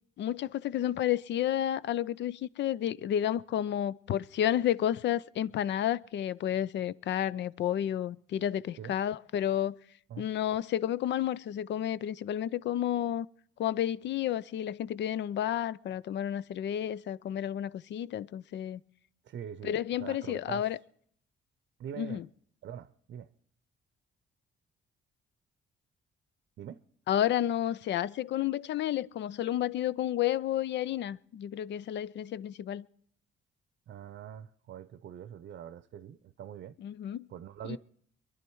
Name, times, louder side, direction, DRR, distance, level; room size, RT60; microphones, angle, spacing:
voice 1, 0.2-9.8 10.2-13.3 13.6-18.8 19.6-20.8 22.0-22.3 27.1-32.9 36.8-37.3 37.7-37.8, left 11 dB, 65° left, 0.5 m, -31 dB
voice 2, 19.2-20.7 21.8-22.2 22.6-23.3 26.6-26.8 33.9-36.8 37.3-37.8, right 9 dB, 65° right, 0.7 m, -43 dB
22.5 x 11.5 x 4.6 m
cardioid pair, 90°, 20 cm